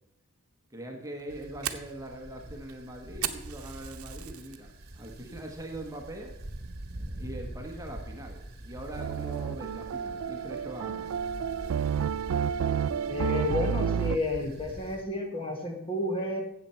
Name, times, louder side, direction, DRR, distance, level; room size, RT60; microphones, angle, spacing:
voice 1, 0.7-6.3 7.2-11.1, right 1 dB, 15° right, 2 dB, 1.2 m, -42 dB
Fire, 1.0-4.6 5.0-5.4 5.8-5.9 6.4-6.8, right 11 dB, 90° right, 0.8 m, -38 dB
sound 1, 1.3-15.0, right 1 dB, 50° right, 1.3 m, -44 dB
sound 2, 9.0-14.2, right 7 dB, 75° right, 0.3 m, -30 dB
voice 2, 13.1-16.4, left 2 dB, 25° left, 3 dB, 1.5 m, -31 dB
13.0 x 8.1 x 4.4 m, 0.85 s
head